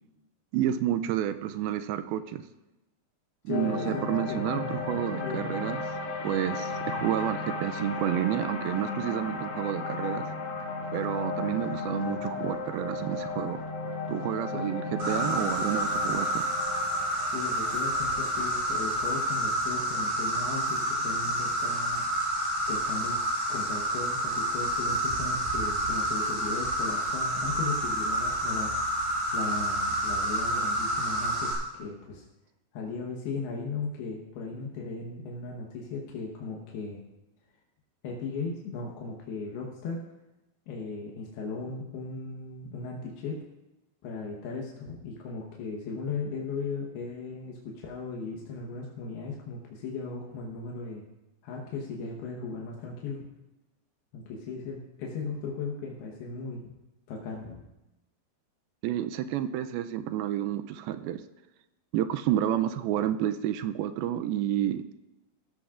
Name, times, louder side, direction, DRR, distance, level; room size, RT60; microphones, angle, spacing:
voice 1, 0.5-2.4 3.5-5.8 6.2-10.3 10.9-13.6 14.1-16.5 58.8-61.2 61.9-64.8, right 11 dB, 85° right, 10 dB, 2.4 m, -30 dB
voice 2, 3.5-5.7 14.5-14.7 17.3-22.0 22.7-23.2 23.5-28.9 29.3-32.2 32.7-37.0 38.0-40.0 40.7-43.4 44.0-51.0 51.4-53.3 54.1-56.7 57.1-57.6, left 4 dB, 85° left, -1 dB, 3.2 m, -37 dB
sound 1, 3.5-19.8, left 4 dB, 60° left, 3.3 m, -35 dB
Insect, 15.0-31.5, equal, 65° right, 6.3 m, -29 dB
17.0 x 14.0 x 2.5 m, 0.99 s
omnidirectional pair, 4.4 m